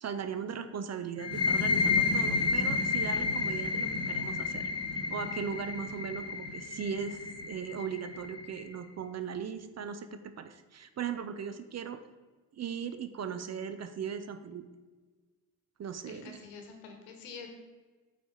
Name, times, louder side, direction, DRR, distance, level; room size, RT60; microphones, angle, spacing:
voice 1, 0.0-4.7 5.1-12.0 12.5-14.7 15.8-16.4, right 7 dB, 35° right, 10 dB, 0.6 m, -38 dB
sound 1, 1.2-8.6, left 4 dB, 30° left, 1.1 m, -31 dB
voice 2, 16.0-17.5, left 5 dB, 80° left, 4 dB, 1.2 m, -47 dB
8.3 x 4.1 x 4.7 m, 1.3 s
figure-of-eight pair, 45°, 49 cm